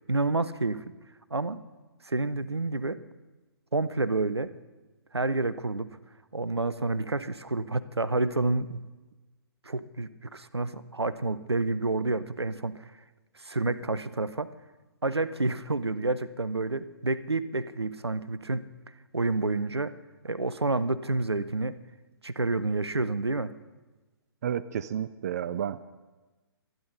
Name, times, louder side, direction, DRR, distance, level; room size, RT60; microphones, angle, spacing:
voice 1, 0.1-0.8 1.3-1.6 2.1-3.0 3.7-4.5 5.1-5.9 6.3-8.8 9.6-12.9 13.4-14.5 15.0-18.7 19.1-19.9 20.2-21.8 22.2-23.5, right 3 dB, 85° right, 16 dB, 0.7 m, -29 dB
voice 2, 24.4-25.8, right 9 dB, 40° right, 15 dB, 0.4 m, -31 dB
24.5 x 10.5 x 4.0 m, 1.2 s
figure-of-eight pair, 130°, 13 cm